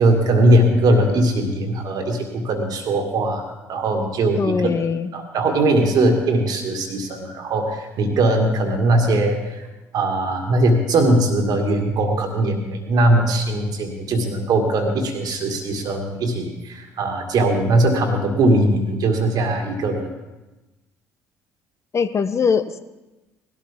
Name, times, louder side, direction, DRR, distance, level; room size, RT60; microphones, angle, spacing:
voice 1, 0.0-4.5 5.1-9.6 9.9-20.1, right 1 dB, 55° right, 4 dB, 2.0 m, -20 dB
voice 2, 4.4-5.1 21.9-22.8, left 5 dB, 35° left, 11 dB, 0.9 m, -21 dB
19.0 x 12.5 x 3.6 m, 1.1 s
figure-of-eight pair, 50°, 8 cm